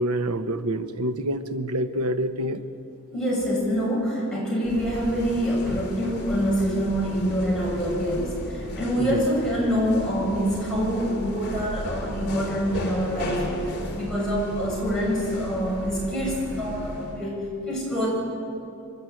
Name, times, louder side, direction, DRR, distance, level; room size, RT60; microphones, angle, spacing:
voice 1, 0.0-2.6 8.9-9.3, right 1 dB, 80° right, 10 dB, 1.0 m, -27 dB
voice 2, 3.1-13.4 13.9-18.1, equal, 5° left, -6 dB, 7.0 m, -26 dB
sound 1, 4.6-17.3, left 1 dB, 50° left, 3.3 m, -35 dB
26.5 x 12.0 x 9.3 m, 2.7 s
head